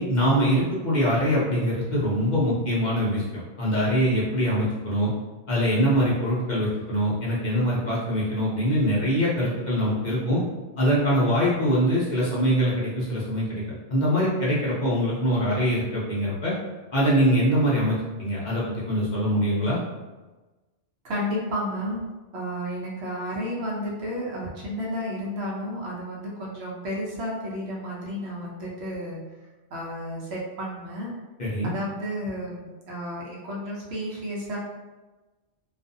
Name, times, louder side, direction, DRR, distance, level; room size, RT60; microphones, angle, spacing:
voice 1, 0.0-3.2 3.6-5.1 5.5-10.4 10.8-16.5 16.9-19.8 31.4-31.7, equal, 50° left, -7 dB, 0.7 m, -23 dB
voice 2, 21.0-22.0 22.3-29.2 29.7-31.1 31.6-34.6, equal, 70° right, -4 dB, 0.9 m, -32 dB
2.4 x 2.4 x 2.5 m, 1.2 s
omnidirectional pair, 1.2 m